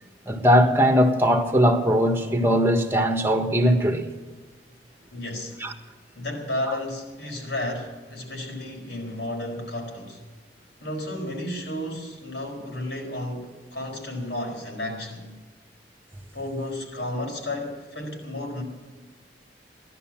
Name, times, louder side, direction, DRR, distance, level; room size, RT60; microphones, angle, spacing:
voice 1, 0.2-4.1 5.6-5.7, equal, 15° right, 1.5 m, -20 dB
voice 2, 5.1-5.6 6.1-10.2 10.8-15.3 16.3-18.6, left 1 dB, 80° left, 4.6 m, -32 dB
16.5 x 11.5 x 7.4 m
head